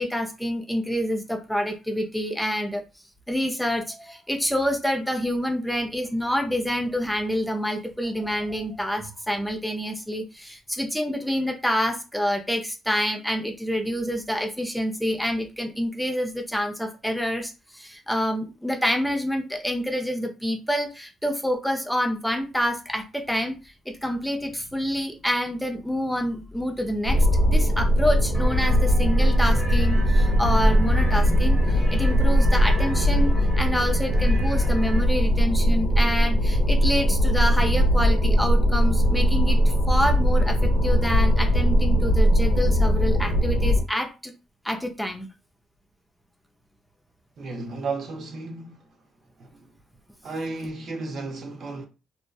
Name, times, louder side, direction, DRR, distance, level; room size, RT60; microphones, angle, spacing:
voice 1, 0.0-2.8 3.3-23.6 23.9-44.3 44.6-45.3, equal, ahead, 0.4 m, -27 dB
sound 1, 27.0-43.8, equal, 75° left, 0.7 m, -20 dB
sound 2, 28.3-35.0, right 1 dB, 30° right, 0.8 m, -39 dB
voice 2, 47.4-48.9 49.4-49.5 50.2-51.9, right 3 dB, 60° right, 0.6 m, -33 dB
2.6 x 2.1 x 2.2 m
cardioid pair, 90°, 0 cm